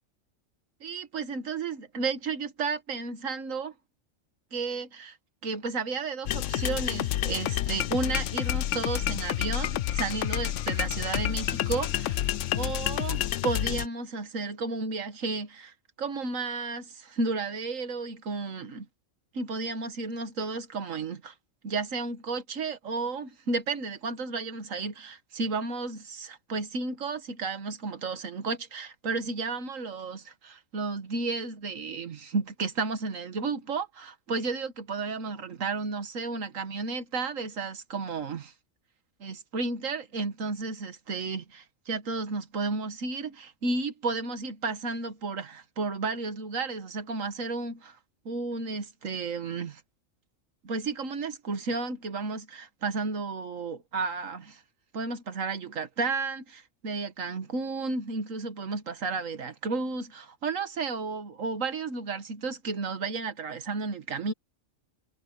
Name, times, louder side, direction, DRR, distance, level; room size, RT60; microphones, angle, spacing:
voice 1, 0.8-3.7 4.5-5.2 5.4-12.2 12.5-18.9 19.3-21.3 21.6-38.5 39.2-48.0 48.3-49.8 50.6-54.6 54.9-64.3, right 4 dB, 80° right, 1.9 m, -33 dB
sound 1, 6.3-13.9, left 12 dB, 70° left, 0.9 m, -29 dB
omnidirectional pair, 1.4 m